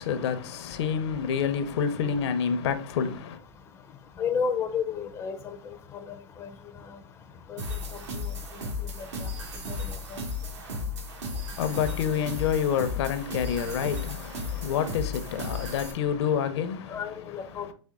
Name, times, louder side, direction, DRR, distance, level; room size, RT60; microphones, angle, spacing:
voice 1, 0.0-3.4 11.6-17.7, left 7 dB, 65° left, 0.7 m, -28 dB
voice 2, 4.2-5.6 6.4-6.5 7.5-7.6 9.2-9.3 10.1-10.2 16.9-17.7, left 6 dB, 15° left, 0.5 m, -30 dB
sound 1, 7.6-15.9, left 3 dB, 70° right, 1.5 m, -35 dB
4.3 x 3.4 x 3.6 m
hypercardioid pair, 135°, 15 cm